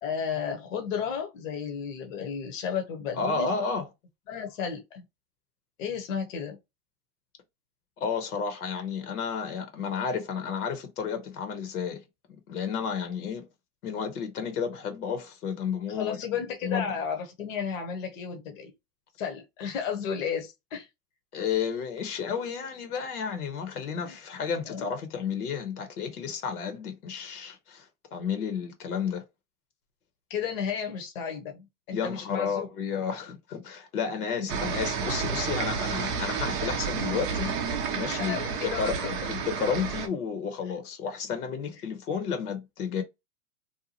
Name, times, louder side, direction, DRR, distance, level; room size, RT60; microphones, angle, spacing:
voice 1, 0.0-3.5 4.3-5.0 5.8-6.6 15.9-18.7 19.2-20.9 24.0-24.2 24.7-24.9 30.3-32.7 34.4-34.5 38.2-39.1 39.6-39.7, left 7 dB, 55° left, 0.9 m, -33 dB
voice 2, 3.1-3.9 8.0-12.0 12.5-13.5 13.8-16.2 16.6-16.9 21.3-29.2 31.9-38.4 38.6-43.0, left 6 dB, 70° left, 1.0 m, -32 dB
sound 1, 34.5-40.1, right 6 dB, 25° right, 0.4 m, -30 dB
2.8 x 2.1 x 2.8 m
hypercardioid pair, 125°, 46 cm